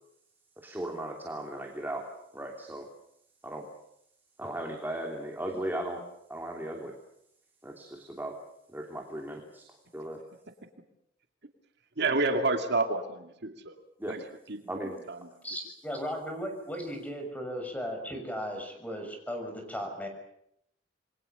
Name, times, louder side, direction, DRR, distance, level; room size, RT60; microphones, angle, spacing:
voice 1, 0.6-2.1 2.3-2.9 3.4-3.7 4.4-6.0 6.3-7.0 7.6-8.4 8.7-9.6 9.9-10.2 14.0-14.1 14.7-15.0, right 1 dB, 10° right, 1 dB, 2.9 m, -37 dB
voice 2, 12.0-13.8 14.1-14.2 14.8-15.2, right 3 dB, 65° right, 5 dB, 2.4 m, -29 dB
voice 3, 15.4-20.1, equal, 10° left, 4 dB, 6.5 m, -36 dB
28.0 x 22.5 x 6.9 m, 0.76 s
head